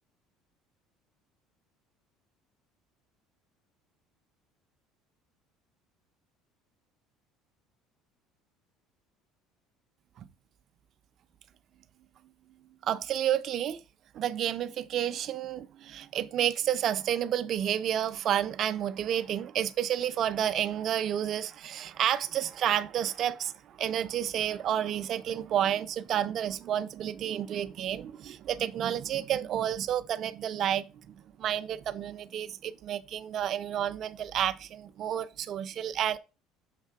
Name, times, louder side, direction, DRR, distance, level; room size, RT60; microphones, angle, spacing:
voice 1, 12.8-13.8 14.1-36.2, right 10 dB, 40° right, 0.4 m, -30 dB
6.5 x 3.3 x 4.6 m
cardioid pair, 165°, 0 cm